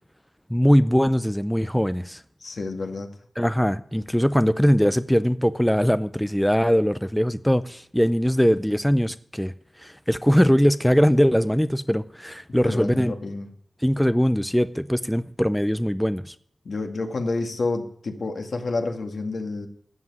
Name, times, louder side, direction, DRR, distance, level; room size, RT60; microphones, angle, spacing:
voice 1, 0.5-2.2 3.4-9.5 9.8-13.1 13.8-16.3, equal, 5° left, 0.5 m, -21 dB
voice 2, 2.4-3.1 12.6-13.5 16.7-19.7, left 3 dB, 70° left, 2.0 m, -29 dB
13.0 x 7.7 x 9.5 m
wide cardioid pair, 75°, 0 cm